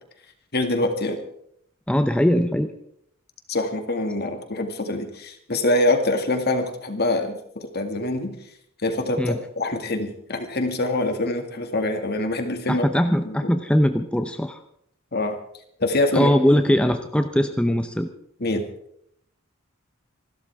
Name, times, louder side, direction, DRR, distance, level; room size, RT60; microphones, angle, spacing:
voice 1, 0.5-1.2 3.5-8.4 8.8-12.9 13.2-13.5 15.1-15.4 15.8-16.3 18.4-18.7, left 2 dB, 50° left, 6 dB, 2.1 m, -24 dB
voice 2, 1.9-2.7 9.2-9.4 12.7-14.6 16.1-18.1, equal, 5° left, 7 dB, 0.7 m, -21 dB
27.0 x 13.0 x 3.6 m, 0.69 s
head